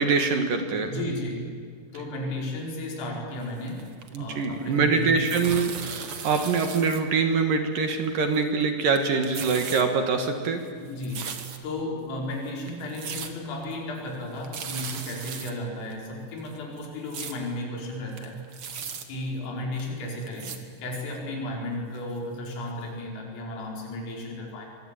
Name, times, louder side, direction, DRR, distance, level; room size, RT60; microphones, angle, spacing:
voice 1, 0.0-0.9 4.1-10.6, right 4 dB, 60° right, 6 dB, 2.5 m, -24 dB
voice 2, 0.9-1.5 1.9-3.9 4.2-5.2 10.8-11.3 11.6-18.4 19.1-24.7, left 1 dB, 90° left, 0 dB, 7.6 m, -34 dB
sound 1, 3.5-4.6 4.9-7.0 7.3-7.4 8.1-8.6 8.9-9.8 10.2-11.8 12.3-12.4 12.7-13.3 13.6-13.7 14.1-14.2 14.4-15.5 15.9-16.0 16.4-17.3 17.8-17.9 18.1-19.0 19.8-19.9 20.2-20.6 21.1-21.2 21.9-22.0 22.4-22.5 22.8-22.9, right 6 dB, 85° right, 1.2 m, -37 dB
24.5 x 24.0 x 9.1 m, 2.1 s
omnidirectional pair, 5.7 m